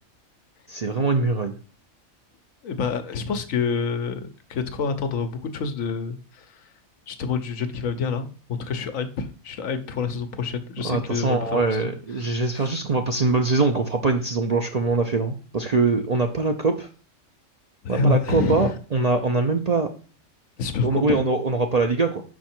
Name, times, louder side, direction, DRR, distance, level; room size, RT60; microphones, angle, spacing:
voice 1, 0.7-1.5 10.8-16.9 17.9-19.9 20.8-22.2, right 3 dB, 55° right, 4 dB, 0.4 m, -23 dB
voice 2, 2.6-6.5 7.1-8.3 8.6-11.9 12.6-12.7 17.8-18.7 20.6-21.2, left 5 dB, 75° left, 8 dB, 1.2 m, -27 dB
5.6 x 4.7 x 4.4 m, 0.38 s
omnidirectional pair, 1.4 m